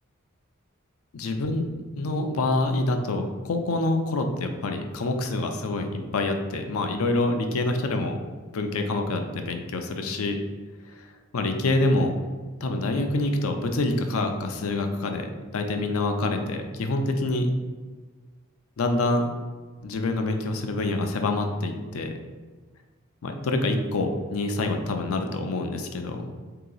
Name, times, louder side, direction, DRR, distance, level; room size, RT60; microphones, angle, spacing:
voice 1, 1.1-8.2 8.5-10.4 10.9-11.1 11.3-12.1 12.6-15.3 15.5-17.5 18.8-19.3 19.8-22.1 23.2-26.3, left 2 dB, 75° left, 5 dB, 0.4 m, -26 dB
2.8 x 2.8 x 3.9 m, 1.4 s
head